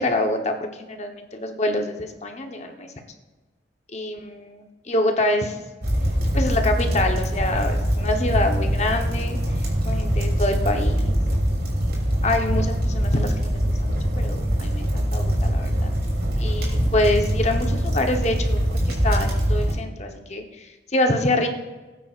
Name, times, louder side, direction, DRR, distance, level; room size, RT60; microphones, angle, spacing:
voice 1, 0.0-2.9 3.9-5.6 6.3-9.4 9.9-11.2 12.2-15.9 16.4-21.5, left 1 dB, 40° left, 4 dB, 1.0 m, -26 dB
sound 1, 5.8-19.7, equal, 60° right, 3.0 m, -23 dB
18.0 x 9.1 x 2.5 m, 1.2 s
head